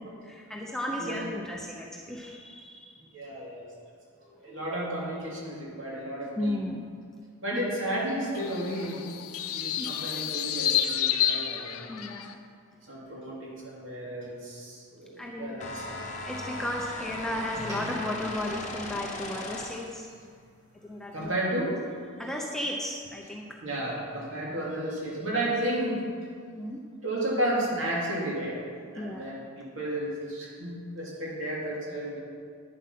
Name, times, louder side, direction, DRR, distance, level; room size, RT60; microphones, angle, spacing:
voice 1, 0.2-3.1 4.5-4.6 6.4-6.9 9.8-9.9 11.9-12.4 15.2-15.6 16.3-20.1 20.8-21.3 22.2-23.6 26.5-26.8 29.0-29.2, left 1 dB, ahead, -1 dB, 0.6 m, -34 dB
voice 2, 3.1-3.6 4.2-6.6 7.4-9.1 9.5-11.8 12.9-15.8 21.1-21.8 23.6-26.0 27.0-28.6 28.9-32.2, right 1 dB, 60° right, -5 dB, 2.9 m, -32 dB
sound 1, 8.3-12.3, left 10 dB, 85° left, 0.6 m, -30 dB
sound 2, 15.6-20.0, left 2 dB, 35° left, 0.9 m, -38 dB
sound 3, 17.5-22.2, left 1 dB, 15° right, 2.4 m, -46 dB
9.6 x 7.4 x 5.9 m, 2.2 s
head